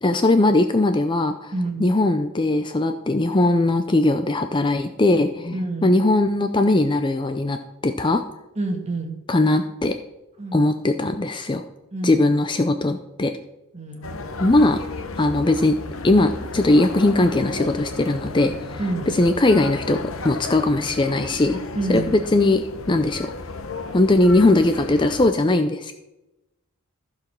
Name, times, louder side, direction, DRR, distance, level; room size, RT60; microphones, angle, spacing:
voice 1, 0.0-1.5 1.8-5.6 5.8-7.6 7.8-8.2 9.3-10.0 10.5-11.6 12.0-13.3 14.4-14.8 15.2-15.8 16.0-18.8 19.1-21.6 21.9-23.3 23.9-25.9, left 2 dB, 20° left, 8 dB, 0.4 m, -19 dB
voice 2, 1.5-1.9 5.5-5.9 8.5-9.1 10.4-10.7 11.9-12.2 13.7-14.1 18.8-19.1 21.7-22.1, right 2 dB, 30° right, 3 dB, 1.7 m, -27 dB
sound 1, 14.0-25.3, left 3 dB, 60° left, 0.9 m, -34 dB
14.5 x 4.9 x 6.1 m, 0.97 s
head